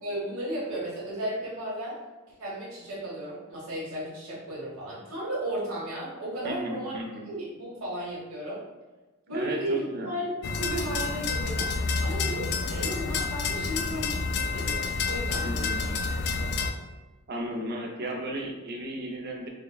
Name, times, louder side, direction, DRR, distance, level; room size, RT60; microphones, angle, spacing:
voice 1, 0.0-1.9 2.4-8.6 9.3-11.7 12.0-15.9 16.2-16.7, right 1 dB, 80° right, -6 dB, 1.4 m, -34 dB
voice 2, 6.4-7.3 9.3-10.1 15.4-15.8 17.3-19.5, right 1 dB, 50° right, 0 dB, 0.5 m, -34 dB
sound 1, 10.4-16.7, left 4 dB, 50° left, 0.3 m, -29 dB
6.4 x 2.2 x 2.3 m, 1.1 s
head